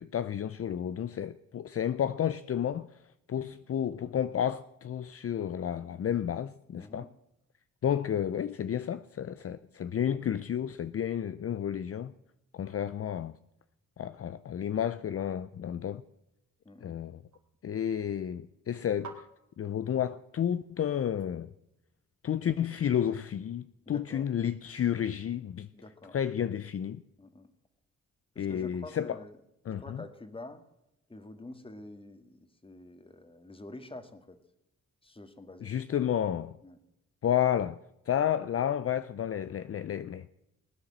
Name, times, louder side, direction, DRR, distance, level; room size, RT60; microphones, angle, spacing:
voice 1, 0.0-2.9 3.3-7.1 7.8-12.1 12.5-13.3 14.0-16.0 16.8-17.2 17.6-19.3 19.6-21.5 22.2-25.7 26.1-27.0 28.4-29.2 29.7-30.0 35.6-36.6 37.2-37.8 38.1-40.3, left 9 dB, 50° left, 0.6 m, -31 dB
voice 2, 6.8-7.1 16.6-17.0 23.8-24.3 25.7-26.2 27.2-27.5 28.3-29.4 29.7-30.6 31.1-34.4 35.0-35.8 36.6-36.8, left 2 dB, 15° left, 1.7 m, -47 dB
sound 1, 16.1-21.8, right 5 dB, 70° right, 3.2 m, -56 dB
20.0 x 9.6 x 7.4 m
cardioid pair, 95°, 31 cm